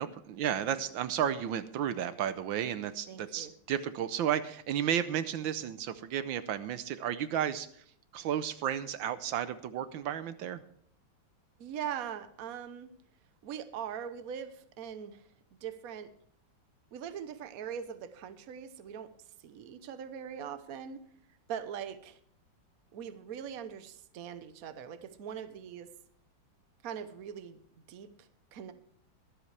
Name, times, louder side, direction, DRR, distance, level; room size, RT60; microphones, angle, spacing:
voice 1, 0.0-7.8 8.1-10.6, right 9 dB, 80° right, 12 dB, 1.5 m, -33 dB
voice 2, 3.1-3.5 11.6-12.9 13.4-15.2 15.6-16.1 16.9-19.1 19.4-21.0 21.5-22.2 22.9-25.9 26.8-27.6 27.9-28.7, right 8 dB, 55° right, 11 dB, 1.2 m, -41 dB
23.0 x 8.0 x 3.3 m, 0.62 s
omnidirectional pair, 2.1 m